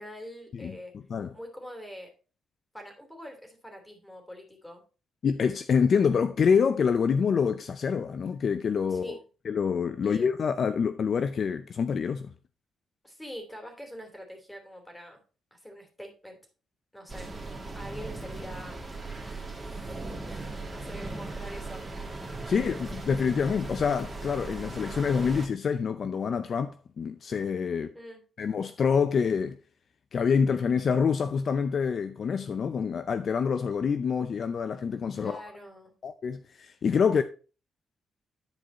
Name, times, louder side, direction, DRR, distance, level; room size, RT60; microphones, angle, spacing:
voice 1, 0.0-0.9 1.3-2.1 2.7-4.8 8.9-9.2 10.0-10.3 13.0-15.2 15.5-16.4 16.9-17.3 17.7-18.8 20.3-21.8 22.4-22.8 27.9-28.2 35.2-36.0, equal, 5° left, 2.8 m, -44 dB
voice 2, 5.2-9.2 9.4-12.3 22.5-27.9 28.4-29.6 30.1-35.4 36.0-37.2, left 6 dB, 50° left, 0.5 m, -26 dB
sound 1, 17.1-25.5, right 2 dB, 15° right, 2.2 m, -38 dB
10.5 x 4.7 x 4.2 m
cardioid pair, 120°, 0 cm